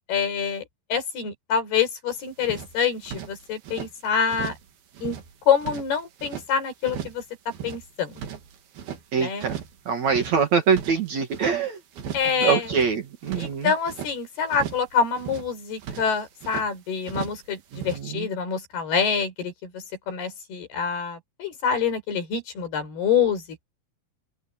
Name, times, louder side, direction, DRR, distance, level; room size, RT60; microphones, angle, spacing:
voice 1, 0.1-0.6 0.9-4.5 5.0-5.2 5.5-7.2 7.6-8.2 9.2-9.5 12.1-12.7 13.4-23.6, left 6 dB, 70° left, 6.9 m, -26 dB
sound 1, 2.1-2.2 2.4-3.9 4.3-4.7 4.9-6.5 6.8-7.2 7.5-9.0 9.4-9.8 10.0-11.6 11.9-12.3 12.6-14.1 14.5-14.9 15.2-16.7 17.0-17.5 17.7-18.0, right 8 dB, 70° right, 4.3 m, -37 dB
voice 2, 9.1-9.6 9.9-11.8 12.4-13.7 17.7-18.3, right 6 dB, 50° right, 2.6 m, -24 dB
open air
omnidirectional pair, 4.7 m